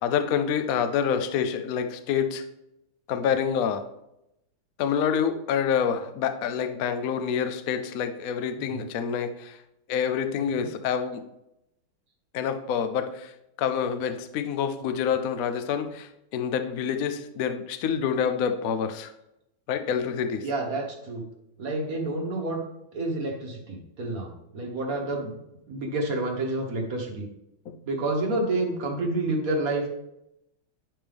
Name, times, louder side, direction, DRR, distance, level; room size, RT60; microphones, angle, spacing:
voice 1, 0.0-2.4 3.1-3.8 4.8-9.6 9.9-11.2 12.3-13.3 13.6-19.1 19.7-20.5, left 7 dB, 80° left, 9 dB, 0.8 m, -27 dB
voice 2, 20.4-21.2 21.6-22.6 22.9-25.3 25.7-27.3 27.9-29.8, right 2 dB, 50° right, 0 dB, 1.4 m, -29 dB
10.0 x 5.4 x 3.4 m, 0.84 s
omnidirectional pair, 2.3 m